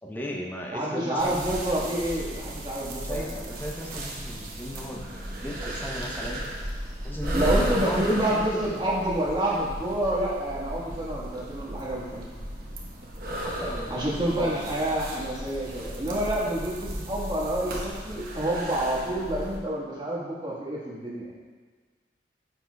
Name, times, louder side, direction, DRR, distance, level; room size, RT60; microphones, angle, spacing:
voice 1, 0.0-1.4 3.0-5.2 5.4-6.4 7.0-8.7 13.4-14.0 14.4-14.6, equal, 10° left, 0 dB, 0.8 m, -36 dB
voice 2, 0.7-3.4 7.3-12.3 13.9-21.3, right 1 dB, 25° right, -6 dB, 1.6 m, -28 dB
sound 1, 1.2-19.6, equal, 55° right, 1.1 m, -35 dB
9.6 x 6.4 x 2.3 m, 1.5 s
head